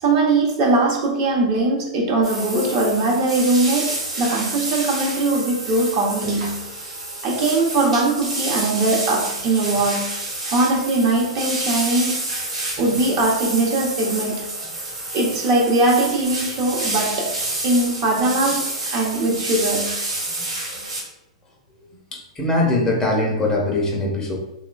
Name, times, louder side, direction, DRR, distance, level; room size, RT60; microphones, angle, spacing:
voice 1, 0.0-6.6 7.2-10.1 10.5-12.2 12.8-14.5 15.1-17.4 17.6-20.0, right 2 dB, 45° right, -2 dB, 0.7 m, -20 dB
sound 1, 2.2-21.0, right 2 dB, 85° right, 1.1 m, -29 dB
voice 2, 22.1-24.4, left 2 dB, 20° left, -1 dB, 0.6 m, -21 dB
2.9 x 2.1 x 2.4 m, 0.85 s
hypercardioid pair, 120°, 3 cm